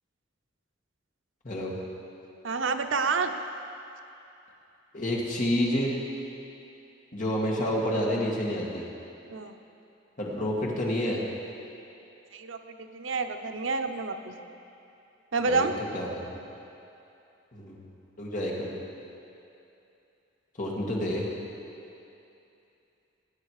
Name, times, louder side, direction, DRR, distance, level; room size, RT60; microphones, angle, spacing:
voice 1, 1.4-1.8 4.9-6.0 7.1-8.8 10.2-11.2 15.4-15.7 15.9-16.2 17.5-17.9 18.2-18.8 20.6-21.3, left 1 dB, 45° left, -3 dB, 2.1 m, -29 dB
voice 2, 2.4-3.3 9.3-9.6 12.3-14.3 15.3-15.7, right 4 dB, 85° right, 6 dB, 0.8 m, -28 dB
19.0 x 8.8 x 4.9 m, 2.8 s
head